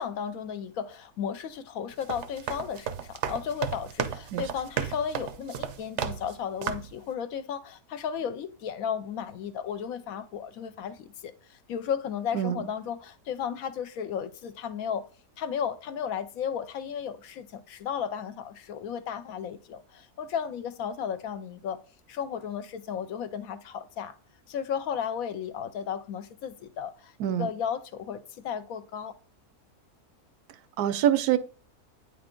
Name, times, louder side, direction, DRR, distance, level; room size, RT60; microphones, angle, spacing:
voice 1, 0.0-15.1 15.4-21.8 22.1-24.2 24.5-29.1, left 8 dB, 70° left, 1.0 m, -34 dB
sound 1, 1.9-6.4 6.6-7.0, right 8 dB, 60° right, 0.8 m, -34 dB
voice 2, 27.2-27.5 30.8-31.4, right 11 dB, 80° right, 1.1 m, -25 dB
8.8 x 3.5 x 3.7 m
omnidirectional pair, 1.6 m